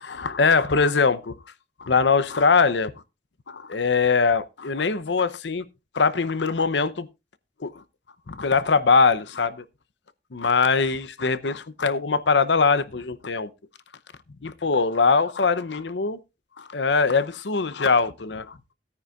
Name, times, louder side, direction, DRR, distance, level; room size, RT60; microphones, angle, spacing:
voice 1, 0.0-1.4 1.8-2.9 3.5-5.6 5.9-7.1 7.6-7.8 8.3-9.6 10.3-13.5 14.4-16.2 16.6-18.6, left 4 dB, 80° left, 0.8 m, -22 dB
17.0 x 9.6 x 2.5 m
head